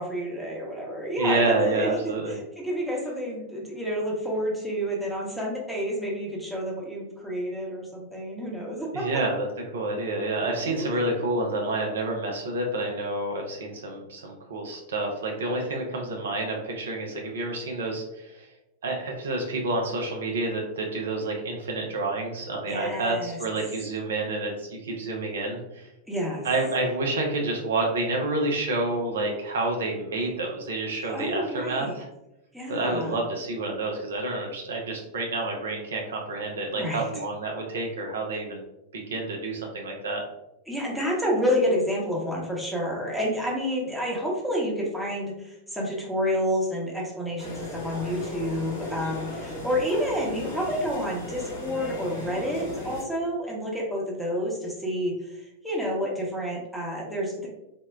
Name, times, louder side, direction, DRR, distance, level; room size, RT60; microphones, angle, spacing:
voice 1, 0.0-9.1 10.6-11.0 22.7-23.4 26.1-26.5 31.0-31.9 32.5-33.1 36.7-37.1 40.7-57.5, equal, ahead, -4 dB, 0.8 m, -29 dB
voice 2, 1.2-2.4 8.9-9.5 9.7-18.5 18.8-25.9 26.4-32.1 32.7-38.6 38.9-40.2, right 2 dB, 65° right, 0 dB, 0.5 m, -29 dB
sound 1, 47.4-53.0, left 1 dB, 60° left, 0.9 m, -36 dB
3.5 x 2.1 x 2.2 m, 0.90 s
figure-of-eight pair, 90°, 0 cm